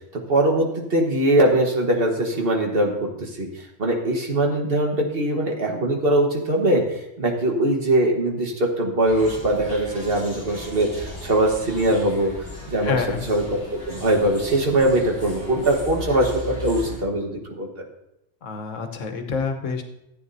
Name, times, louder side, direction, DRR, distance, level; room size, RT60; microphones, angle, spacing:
voice 1, 0.1-12.3 12.7-13.0 13.3-13.4 13.7-17.7, right 1 dB, 50° right, 1 dB, 1.5 m, -21 dB
sound 1, 9.0-17.0, left 1 dB, 15° left, 2.9 m, -37 dB
voice 2, 12.8-13.3 18.4-19.8, left 5 dB, 85° left, 6 dB, 1.3 m, -27 dB
13.5 x 8.8 x 2.7 m, 0.84 s
omnidirectional pair, 1.3 m